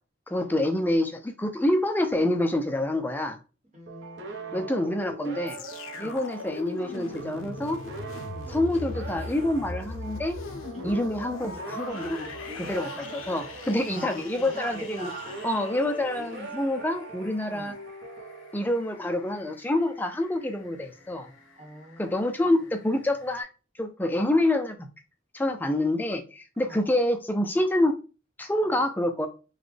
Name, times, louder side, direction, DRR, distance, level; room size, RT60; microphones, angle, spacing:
voice 1, 0.3-3.4 4.5-5.6 6.0-7.8 8.5-10.4 10.8-15.1 15.4-17.7 18.5-21.3 22.0-23.5 23.8-24.9 25.3-27.9 28.4-29.3, left 1 dB, 10° left, 0.4 m, -27 dB
voice 2, 3.7-4.7 5.9-6.2 8.2-8.6 10.7-11.0 12.9-13.1 13.6-15.4 17.4-17.8 21.6-22.5 26.6-26.9, right 2 dB, 35° right, 1.1 m, -44 dB
sound 1, 3.9-19.2, right 3 dB, 60° right, 0.8 m, -41 dB
sound 2, 5.5-15.5 16.1-16.2, left 3 dB, 90° left, 0.5 m, -40 dB
sound 3, 11.9-23.4, left 4 dB, 75° left, 1.5 m, -51 dB
4.0 x 2.2 x 3.2 m
head